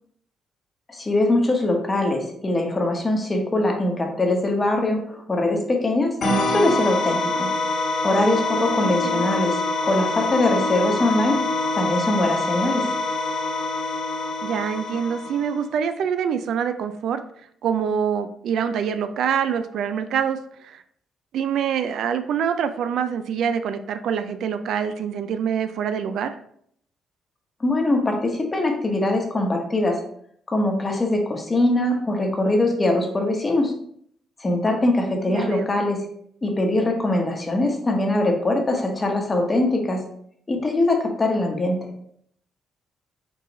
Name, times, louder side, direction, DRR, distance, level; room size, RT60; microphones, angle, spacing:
voice 1, 0.9-6.1 6.5-7.5 8.0-9.6 9.8-11.4 11.7-12.8 27.6-30.0 30.5-33.7 34.4-36.0 36.4-40.0 40.5-41.9, left 2 dB, 25° left, 2 dB, 1.0 m, -22 dB
sound 1, 6.2-15.6, left 2 dB, 50° left, 1.3 m, -25 dB
voice 2, 8.6-9.3 14.4-17.2 17.6-20.8 21.3-26.3 35.3-35.7, right 7 dB, 75° right, 10 dB, 0.3 m, -25 dB
4.6 x 2.4 x 4.0 m, 0.67 s
cardioid pair, 90°, 0 cm